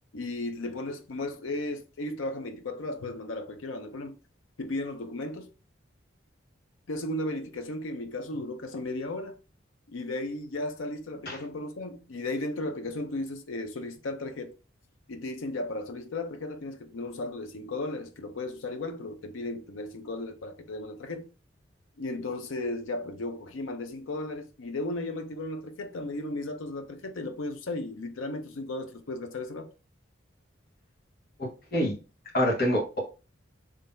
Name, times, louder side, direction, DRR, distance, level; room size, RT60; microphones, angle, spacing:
voice 1, 0.1-4.2 4.6-5.5 6.9-9.4 9.9-14.5 15.1-21.3 22.0-29.7, left 2 dB, 90° left, 0.6 m, -35 dB
voice 2, 31.4-32.0 32.3-33.0, equal, 50° left, 1.3 m, -26 dB
3.7 x 3.2 x 2.6 m
head